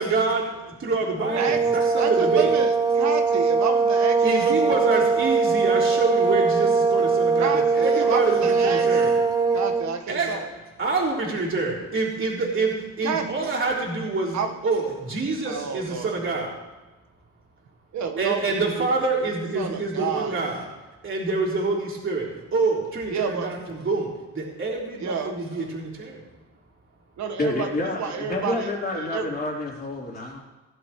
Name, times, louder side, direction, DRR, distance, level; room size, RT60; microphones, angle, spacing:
voice 1, 0.0-2.5 4.2-9.2 10.1-10.4 10.8-14.4 14.6-16.6 18.2-20.7 21.0-26.2, right 3 dB, 40° right, -4 dB, 3.7 m, -26 dB
sound 1, 1.2-9.9, right 4 dB, 10° right, 1.0 m, -21 dB
voice 2, 2.0-4.7 7.4-8.9 9.5-10.5 13.0-13.5 14.3-14.5 15.4-16.1 17.9-18.9 19.5-20.3 23.1-23.5 25.0-25.3 27.2-29.2, right 6 dB, 65° right, 6 dB, 1.5 m, -29 dB
voice 3, 27.4-30.4, left 2 dB, 30° left, -3 dB, 3.8 m, -28 dB
17.0 x 11.5 x 3.2 m, 1.2 s
cardioid pair, 90°, 30 cm